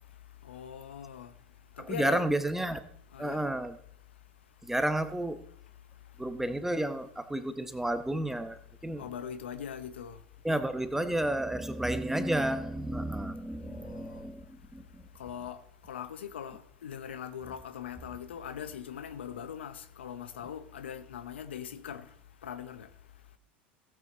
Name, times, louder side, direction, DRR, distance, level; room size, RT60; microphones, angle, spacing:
voice 1, 0.5-1.3 1.8-2.3 3.1-3.4 9.0-10.2 13.6-14.2 15.2-15.6 15.9-22.0 22.4-22.9, left 8 dB, 80° left, 0.9 m, -41 dB
voice 2, 1.8-2.8 3.2-3.8 4.6-5.4 6.2-9.0 10.4-14.4 14.7-15.0, right 1 dB, 5° right, 1.0 m, -31 dB
15.5 x 8.5 x 4.0 m
hypercardioid pair, 85°, 6 cm